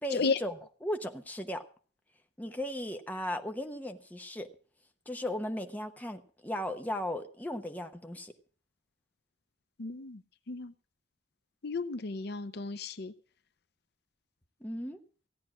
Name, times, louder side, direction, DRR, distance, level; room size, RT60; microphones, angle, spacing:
voice 1, 0.0-1.6 2.4-4.5 5.1-8.3 14.6-15.0, left 1 dB, 10° left, 5 dB, 1.0 m, -36 dB
voice 2, 9.8-10.2 10.5-10.7 11.6-13.1, left 4 dB, 60° left, 13 dB, 0.6 m, -33 dB
16.0 x 9.4 x 6.1 m, 0.43 s
head